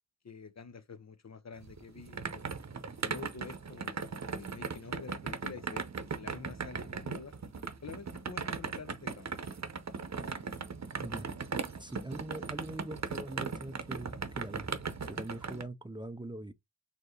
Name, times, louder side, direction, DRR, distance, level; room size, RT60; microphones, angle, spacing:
voice 1, 0.2-2.4 3.0-7.3 7.8-9.3, left 5 dB, 60° left, 0.7 m, -48 dB
sound 1, 1.6-15.6, right 5 dB, 60° right, 0.7 m, -38 dB
voice 2, 11.0-11.3 11.8-14.7 15.1-16.5, right 1 dB, 15° right, 0.5 m, -42 dB
4.5 x 2.8 x 3.1 m
cardioid pair, 40°, 31 cm